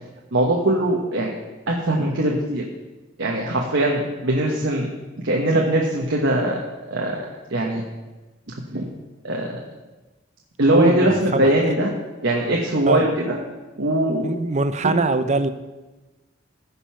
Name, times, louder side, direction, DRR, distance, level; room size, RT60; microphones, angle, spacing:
voice 1, 0.3-1.3 1.7-2.6 3.2-4.9 5.2-6.6 6.9-7.2 7.5-7.8 8.7-8.8 9.2-9.6 10.6-11.9 12.2-13.4 13.8-14.3 14.8-14.9, right 1 dB, 70° right, -2 dB, 1.3 m, -21 dB
voice 2, 10.7-11.5 12.8-13.1 14.2-15.5, right 3 dB, 35° right, 11 dB, 0.6 m, -22 dB
15.0 x 5.5 x 5.7 m, 1.1 s
head